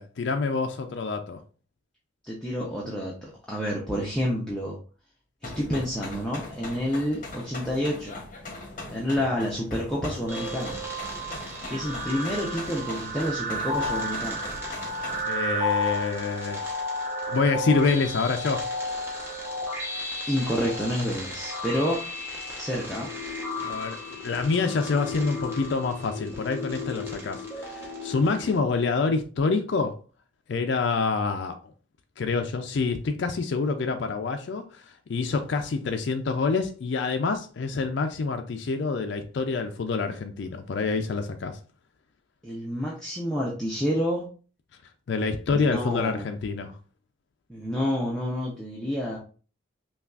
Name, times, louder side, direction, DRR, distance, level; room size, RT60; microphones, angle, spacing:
voice 1, 0.0-1.4 15.3-16.7 17.3-18.7 23.5-30.0 30.5-31.6 32.2-41.6 45.1-46.8, left 4 dB, 65° left, 0.4 m, -27 dB
voice 2, 2.3-4.8 5.4-8.2 8.9-10.8 11.7-14.4 20.3-22.0 22.6-23.1 42.4-44.2 45.5-46.3 47.5-49.2, equal, 5° left, 0.6 m, -29 dB
sound 1, 5.4-15.2, left 2 dB, 40° left, 0.8 m, -41 dB
sound 2, 10.3-28.6, left 1 dB, 10° right, 0.9 m, -33 dB
5.6 x 2.3 x 2.4 m
head